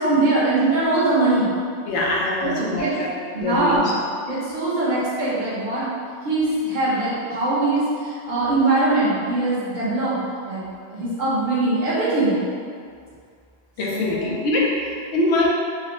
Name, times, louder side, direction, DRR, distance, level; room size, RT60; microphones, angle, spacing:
voice 1, 0.0-1.5 2.4-2.9 3.3-4.0 4.3-5.9 6.2-10.6 10.9-12.4 13.9-14.3, right 2 dB, 50° right, -9 dB, 0.9 m, -22 dB
voice 2, 1.9-3.1 3.4-3.8 13.8-15.5, left 2 dB, 90° left, -4 dB, 0.9 m, -23 dB
3.5 x 2.0 x 2.5 m, 2.1 s
omnidirectional pair, 1.1 m